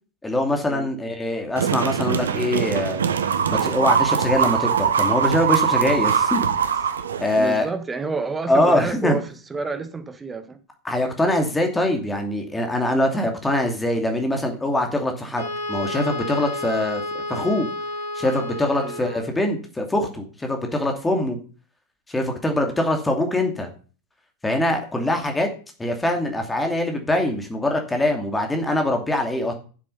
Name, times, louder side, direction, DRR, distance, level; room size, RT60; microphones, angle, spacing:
voice 1, 0.2-3.0 3.5-6.5 7.2-7.7 8.5-9.2 10.8-17.7 18.1-21.4 22.1-23.7 24.4-25.5 25.8-29.5, left 1 dB, 10° left, 2.6 m, -23 dB
sound 1, 1.6-7.6, right 7 dB, 65° right, 1.1 m, -22 dB
voice 2, 7.4-10.6 18.8-19.0, right 4 dB, 15° right, 1.6 m, -29 dB
Wind instrument woodwind instrument, 15.4-19.4, left 1 dB, 70° left, 3.8 m, -31 dB
11.5 x 7.4 x 5.6 m
figure-of-eight pair, 90°, 0 cm